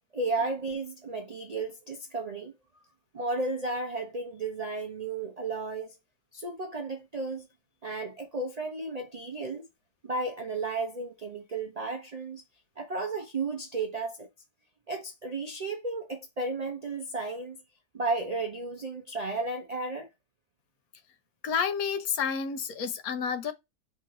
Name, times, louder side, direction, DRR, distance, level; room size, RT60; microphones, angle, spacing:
voice 1, 0.1-2.5 3.1-5.9 6.3-7.5 7.8-9.7 10.0-12.4 12.8-14.3 14.9-17.6 17.9-20.1, right 3 dB, 55° right, 0.4 m, -33 dB
voice 2, 21.4-23.5, left 6 dB, 70° left, 1.1 m, -30 dB
4.6 x 3.0 x 3.7 m
omnidirectional pair, 1.7 m